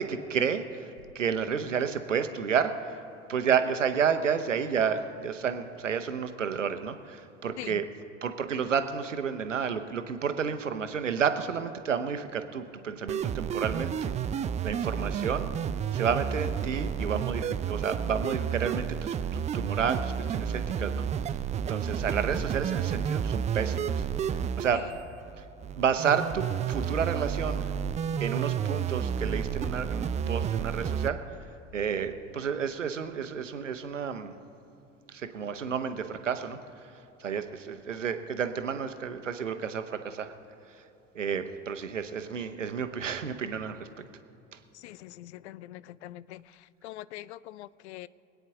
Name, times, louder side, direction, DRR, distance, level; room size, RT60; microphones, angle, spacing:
voice 1, 0.0-3.0 3.3-7.8 8.2-15.5 15.9-21.4 21.7-24.8 25.8-27.7 28.2-31.2 31.7-34.3 35.1-36.6 37.2-40.3 41.1-44.0, right 7 dB, 80° right, 9 dB, 0.9 m, -31 dB
sound 1, 13.1-31.1, right 8 dB, 20° right, 0.4 m, -31 dB
voice 2, 44.7-48.1, left 15 dB, 65° left, 18 dB, 0.5 m, -43 dB
24.5 x 9.2 x 3.7 m, 2.8 s
figure-of-eight pair, 70°, 37 cm